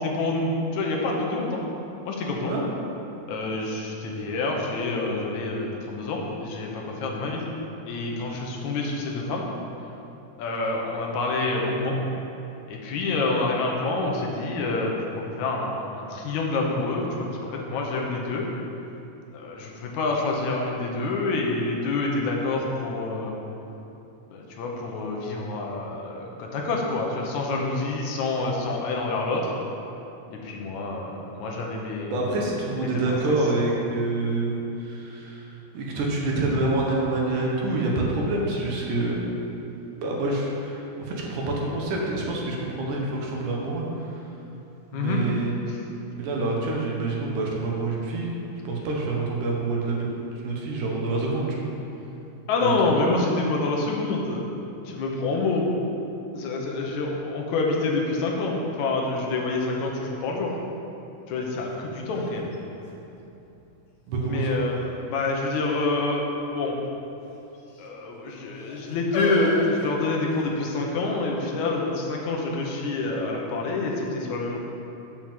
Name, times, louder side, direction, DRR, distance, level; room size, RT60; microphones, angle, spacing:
voice 1, 0.0-1.6 2.1-2.5 3.3-7.4 7.8-9.5 10.4-12.0 12.7-15.0 15.3-18.5 19.3-23.3 24.3-29.5 30.3-32.2 32.8-33.4 44.9-45.2 45.7-45.8 52.5-54.4 54.9-55.7 56.3-60.5 61.3-62.5 64.3-66.8 67.8-74.6, left 3 dB, 70° left, -1 dB, 2.2 m, -27 dB
voice 2, 32.1-35.4 35.7-39.2 40.0-43.8 44.9-45.5 46.1-48.4 48.6-51.7 52.6-52.7 64.1-64.6, right 2 dB, 75° right, -2 dB, 2.6 m, -27 dB
sound 1, 61.5-61.6 62.1-63.6 64.2-64.7 65.5-65.9 66.2-66.3 67.2-67.9 68.6-70.6 71.4-71.5, left 2 dB, 85° left, 2.8 m, -34 dB
7.6 x 4.9 x 7.3 m, 2.9 s
omnidirectional pair, 3.7 m